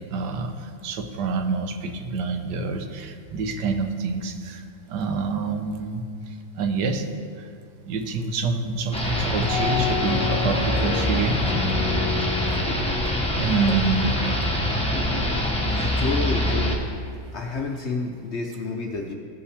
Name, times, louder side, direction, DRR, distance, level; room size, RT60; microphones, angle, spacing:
voice 1, 0.1-7.1 7.4-7.5 7.9-11.4 13.3-14.4, right 4 dB, 85° right, 5 dB, 1.4 m, -27 dB
sound 1, 8.9-16.8, left 1 dB, 5° left, 0.9 m, -24 dB
sound 2, 9.4-14.6, left 7 dB, 90° left, 1.2 m, -31 dB
voice 2, 15.6-16.8 17.3-19.1, left 3 dB, 60° left, 1 dB, 0.7 m, -29 dB
15.0 x 5.5 x 3.3 m, 2.2 s
omnidirectional pair, 1.8 m